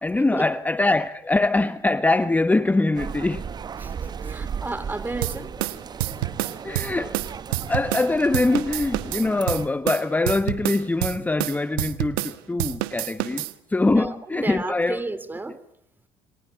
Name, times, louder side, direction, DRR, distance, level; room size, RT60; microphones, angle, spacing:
voice 1, 0.0-3.5 6.6-7.2 7.5-13.4 13.7-15.0, left 2 dB, 15° left, 1.1 m, -23 dB
sound 1, 2.9-9.7, right 6 dB, 35° right, 1.1 m, -35 dB
voice 2, 3.8-5.5 13.3-13.4 13.8-15.6, right 2 dB, 15° right, 3.4 m, -33 dB
sound 2, 5.2-8.1 8.3-12.3 12.6-13.5, right 16 dB, 85° right, 1.4 m, -28 dB
28.5 x 23.5 x 8.6 m
supercardioid pair, 75°, 12 cm